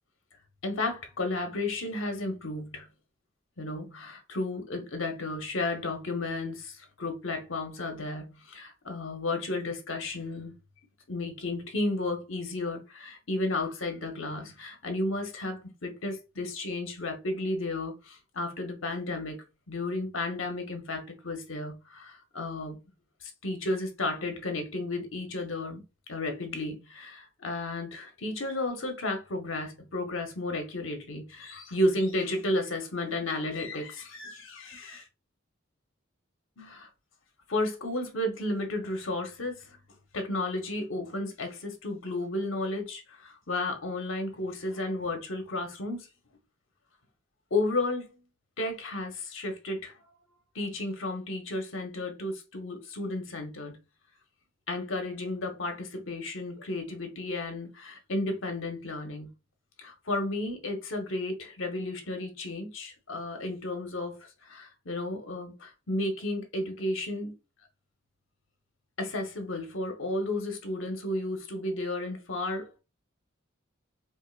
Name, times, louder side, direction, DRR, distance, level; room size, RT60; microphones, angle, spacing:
voice 1, 0.6-2.9 3.6-10.5 11.1-19.4 19.7-22.8 23.2-25.8 26.1-35.1 36.6-36.9 37.5-39.8 40.1-46.1 47.5-48.2 48.6-49.9 50.5-53.8 54.7-59.3 59.8-67.3 69.0-72.8, left 2 dB, 70° left, 1.0 m, -33 dB
4.6 x 2.5 x 2.4 m
head